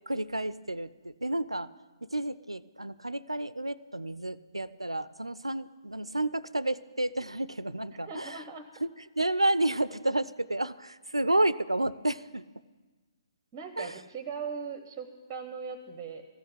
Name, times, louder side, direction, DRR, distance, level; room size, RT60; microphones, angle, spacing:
voice 1, 0.0-1.7 2.0-8.4 8.8-12.4 13.8-14.0, right 1 dB, 85° right, 18 dB, 0.4 m, -31 dB
voice 2, 8.1-8.6 13.5-16.2, right 6 dB, 20° right, 9 dB, 0.7 m, -39 dB
14.5 x 5.6 x 9.9 m, 1.3 s
figure-of-eight pair, 135°, 3 cm